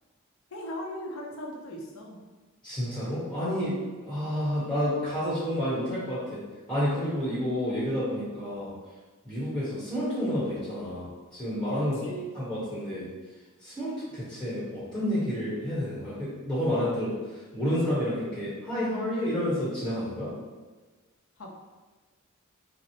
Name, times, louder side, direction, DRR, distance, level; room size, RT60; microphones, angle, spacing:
voice 1, 0.5-2.2 12.0-12.3 21.4-21.5, equal, 75° left, 0 dB, 0.7 m, -38 dB
voice 2, 2.6-3.7 4.0-6.4 6.7-8.7 9.2-12.0 12.3-13.1 13.6-20.3, equal, 5° left, -9 dB, 1.0 m, -30 dB
5.8 x 2.0 x 3.0 m, 1.3 s
head